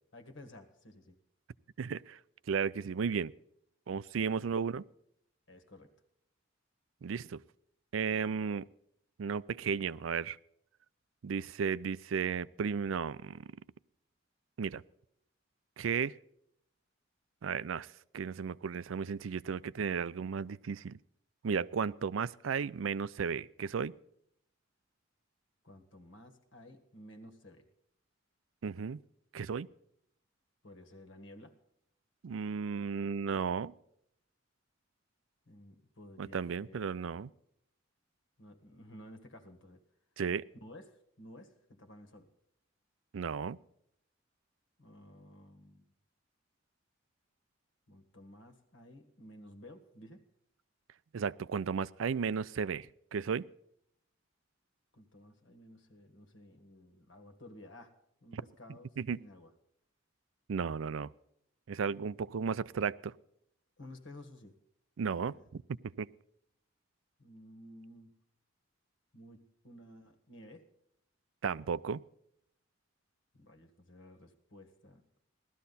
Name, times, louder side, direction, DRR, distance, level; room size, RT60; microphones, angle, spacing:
voice 1, 0.1-1.2 4.3-4.5 5.5-5.9 25.6-27.7 30.6-31.5 35.5-36.8 38.4-39.8 40.5-42.3 44.8-45.8 47.9-50.2 54.9-57.9 58.2-59.5 63.8-64.6 65.0-65.5 67.2-68.2 69.1-70.7 73.3-75.0, left 1 dB, 70° left, 1.8 m, -54 dB
voice 2, 1.8-2.2 2.5-3.3 3.9-4.8 7.0-7.4 7.9-8.7 9.2-10.4 11.2-13.5 14.6-14.8 15.8-16.1 17.4-17.9 18.1-21.0 21.4-23.9 28.6-29.0 29.3-29.7 32.2-33.7 36.2-37.3 40.2-40.5 43.1-43.6 51.1-52.9 53.1-53.5 58.3-58.4 59.0-59.2 60.5-61.1 61.7-63.1 65.0-65.6 66.0-66.1 71.4-72.0, right 6 dB, 90° right, 0.4 m, -34 dB
16.5 x 13.0 x 4.1 m
head